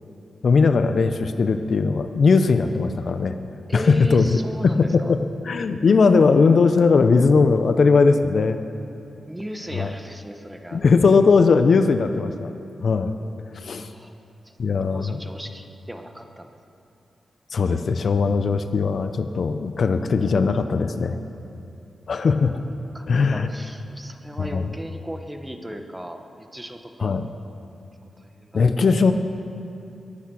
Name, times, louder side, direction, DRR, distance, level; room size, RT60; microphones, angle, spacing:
voice 1, 0.4-3.4 3.7-4.3 4.6-8.6 9.7-9.9 10.7-12.5 12.8-13.1 13.6-13.9 14.6-15.2 17.5-21.2 22.1-22.6 23.1-23.5 24.4-24.7 27.0-27.3 28.5-29.1, left 4 dB, 60° left, 9 dB, 0.7 m, -19 dB
voice 2, 3.7-5.1 9.3-10.8 13.9-14.1 14.4-14.6 14.9-16.6 22.9-27.2 28.2-28.5 28.8-29.0, right 1 dB, 10° right, 6 dB, 1.0 m, -37 dB
22.0 x 8.3 x 6.3 m, 2.7 s
wide cardioid pair, 95°, 0 cm